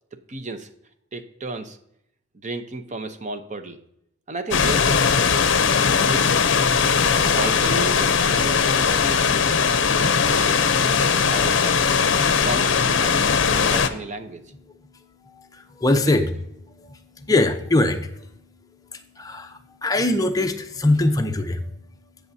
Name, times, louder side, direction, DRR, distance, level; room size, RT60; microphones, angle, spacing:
voice 1, 0.3-0.7 1.1-1.8 2.4-3.8 4.3-5.5 6.1-6.6 7.2-11.8 12.4-14.5 15.9-16.2, right 3 dB, 35° right, 9 dB, 0.7 m, -33 dB
sound 1, 4.5-13.9, left 6 dB, 65° left, 0.6 m, -19 dB
voice 2, 15.2-16.3 16.7-18.3 18.9-21.7, left 2 dB, 20° left, 5 dB, 0.7 m, -22 dB
17.0 x 6.3 x 2.7 m, 0.77 s
head